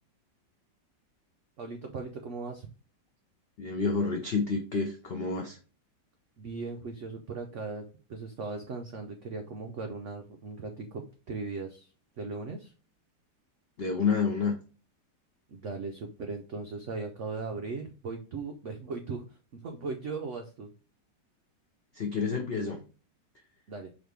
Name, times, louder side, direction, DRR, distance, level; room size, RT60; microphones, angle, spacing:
voice 1, 1.6-2.7 6.4-7.8 8.1-11.9 12.2-12.7 15.5-20.7 23.7-23.9, right 4 dB, 85° right, 4 dB, 0.6 m, -38 dB
voice 2, 3.6-5.6 13.8-14.5 21.9-22.8, left 5 dB, 75° left, 2 dB, 0.5 m, -29 dB
4.0 x 3.0 x 3.1 m, 0.36 s
omnidirectional pair, 2.0 m